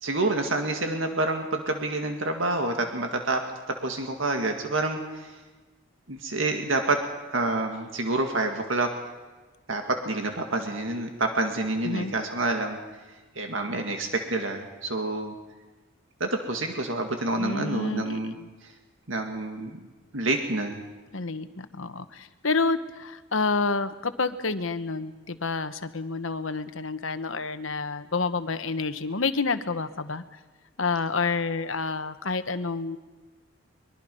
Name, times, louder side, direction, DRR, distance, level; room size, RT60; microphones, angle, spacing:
voice 1, 0.0-3.4 3.7-5.4 6.1-7.0 7.3-8.9 9.7-12.8 13.4-15.3 16.2-18.3 18.6-18.7 19.1-19.8 20.1-20.8, right 2 dB, 70° right, 4 dB, 2.0 m, -28 dB
voice 2, 17.4-18.5 21.1-30.2 30.8-33.0, left 4 dB, 70° left, 11 dB, 1.2 m, -29 dB
23.5 x 22.5 x 5.5 m, 1.3 s
head